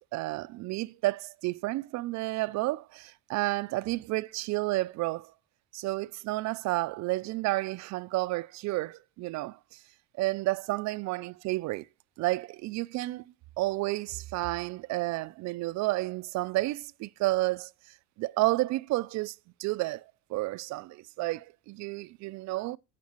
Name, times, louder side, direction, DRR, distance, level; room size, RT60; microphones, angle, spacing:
voice 1, 0.1-5.3 5.7-9.8 10.2-11.9 12.2-13.2 13.6-17.7 18.2-20.0 20.3-22.8, right 19 dB, 45° right, 0.4 m, -31 dB
17.0 x 5.8 x 2.9 m
supercardioid pair, 100°, 39 cm